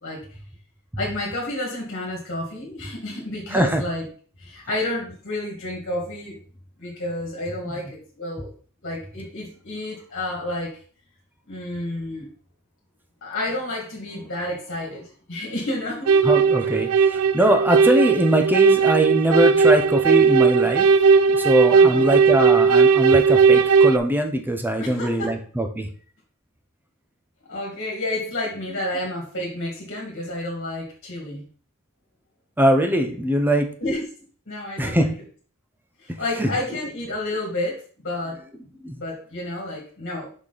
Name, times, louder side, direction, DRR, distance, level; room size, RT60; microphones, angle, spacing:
voice 1, 1.0-4.0 4.4-6.4 6.8-8.5 8.8-10.8 11.5-12.3 13.2-16.1 21.7-22.1 24.8-25.4 27.5-31.4 33.8-34.0 34.5-35.1 36.0-38.4 39.0-40.3, left 1 dB, 50° left, -2 dB, 2.0 m, -30 dB
voice 2, 3.5-3.8 16.2-20.9 21.3-25.9 32.6-33.7 34.8-35.1 36.4-36.5 38.8-38.9, right 1 dB, 10° right, 5 dB, 0.8 m, -21 dB
sound 1, 16.1-24.0, right 5 dB, 75° right, 0.4 m, -17 dB
6.2 x 5.1 x 4.0 m, 0.43 s
head